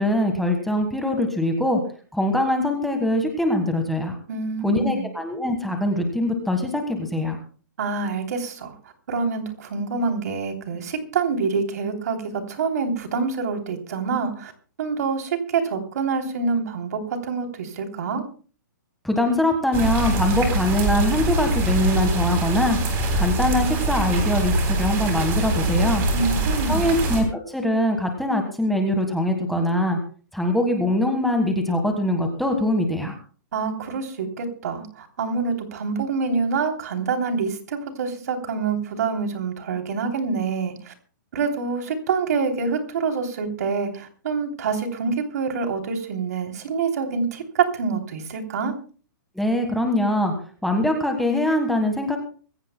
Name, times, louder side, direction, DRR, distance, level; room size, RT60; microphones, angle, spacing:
voice 1, 0.0-1.8 2.1-4.2 4.6-7.4 19.0-22.8 23.1-26.0 26.7-30.0 30.3-33.2 49.3-50.3 50.6-52.2, left 1 dB, ahead, 3 dB, 1.4 m, -22 dB
voice 2, 4.3-5.1 7.8-8.7 9.1-14.5 14.8-18.2 26.1-26.9 33.5-40.9 41.3-48.7, right 5 dB, 55° right, 4 dB, 3.2 m, -26 dB
sound 1, 19.7-27.2, right 2 dB, 20° right, 3.6 m, -23 dB
24.0 x 16.0 x 2.2 m, 0.39 s
hypercardioid pair, 165°, 11 cm